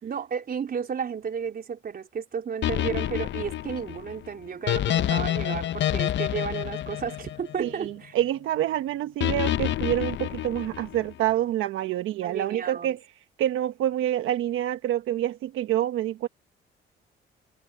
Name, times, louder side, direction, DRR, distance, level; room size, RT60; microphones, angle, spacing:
voice 1, 0.0-8.1 12.2-12.9, right 6 dB, 50° right, 3.9 m, -33 dB
sound 1, 2.6-7.9 9.2-11.1, left 12 dB, 65° left, 0.7 m, -28 dB
voice 2, 7.6-13.0 13.4-16.3, right 12 dB, 90° right, 1.2 m, -27 dB
cardioid pair, 90°, 20 cm